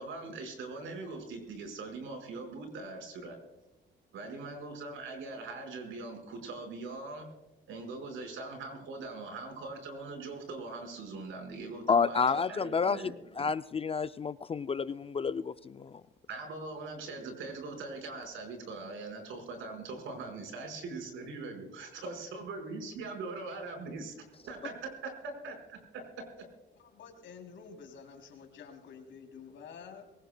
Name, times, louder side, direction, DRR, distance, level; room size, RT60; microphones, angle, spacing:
voice 1, 0.0-3.4 4.1-7.3 7.7-13.1 16.3-24.1 24.4-26.0 26.4-26.5, right 3 dB, 80° right, 3 dB, 4.9 m, -41 dB
voice 2, 11.9-13.0 13.4-15.9, left 5 dB, 30° left, 14 dB, 0.4 m, -29 dB
voice 3, 26.7-30.0, left 6 dB, 75° left, 3 dB, 3.2 m, -49 dB
23.0 x 19.5 x 2.2 m, 0.99 s
cardioid pair, 90°, 20 cm